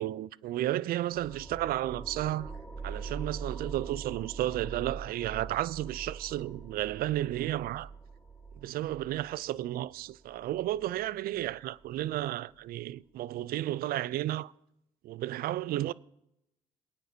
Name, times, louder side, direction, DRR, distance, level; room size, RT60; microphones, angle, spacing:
voice 1, 0.0-2.5 2.8-7.9 8.6-14.5 15.0-15.9, right 14 dB, 60° right, 0.4 m, -33 dB
sound 1, 1.1-12.2, right 5 dB, 15° left, 2.8 m, -44 dB
22.5 x 9.2 x 2.8 m
hypercardioid pair, 60°, 17 cm